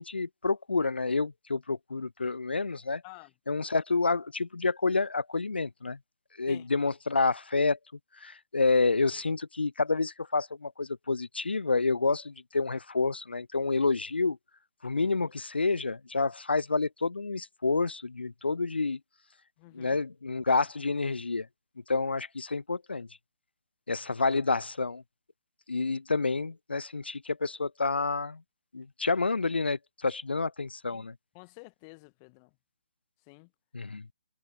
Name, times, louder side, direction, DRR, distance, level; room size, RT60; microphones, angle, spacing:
voice 1, 0.0-3.0 3.5-6.0 6.4-7.8 8.2-14.4 14.8-19.0 19.7-21.5 21.9-23.1 23.9-25.0 25.7-28.4 28.7-31.1 33.7-34.0, left 3 dB, 70° left, 0.5 m, -29 dB
voice 2, 19.6-20.0 30.9-31.1 31.3-32.5 33.3-33.5, left 33 dB, 20° left, 1.4 m, -50 dB
figure-of-eight pair, 140°, 6 cm